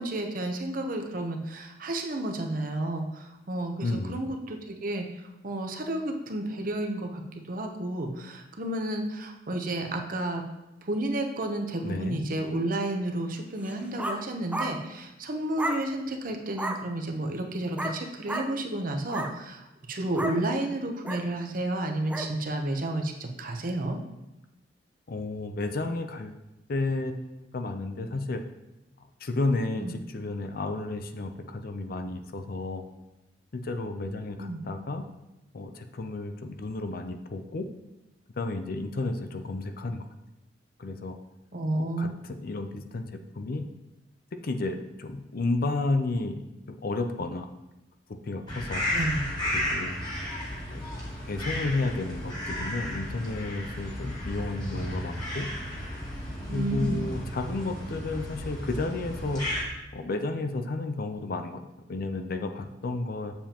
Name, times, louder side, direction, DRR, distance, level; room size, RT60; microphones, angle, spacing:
voice 1, 0.0-5.1 5.4-10.4 10.8-24.0 29.7-29.9 34.4-34.6 41.5-42.1 48.9-49.2 56.5-57.0, right 1 dB, 50° right, 3 dB, 0.8 m, -31 dB
voice 2, 3.8-4.2 11.8-12.2 25.1-26.3 26.7-28.4 29.2-32.9 33.5-35.0 35.5-37.7 38.4-40.0 40.8-41.2 41.7-42.1 42.4-43.6 44.4-46.4 46.7-47.5 48.2-48.8 49.5-49.9 50.7-50.8 51.3-55.5 56.5-59.4 59.9-61.6 61.9-63.3, left 2 dB, 55° left, 7 dB, 0.5 m, -32 dB
sound 1, 13.6-14.2 14.5-14.8 15.6-15.8 16.6-16.8 17.8-18.0 18.3-18.5 19.0-19.3 20.2-20.4 21.0-21.2 22.1-22.3, right 1 dB, 10° right, 0.5 m, -32 dB
sound 2, 48.5-59.6, left 1 dB, 25° left, 2.0 m, -34 dB
7.1 x 7.0 x 2.9 m, 0.95 s
head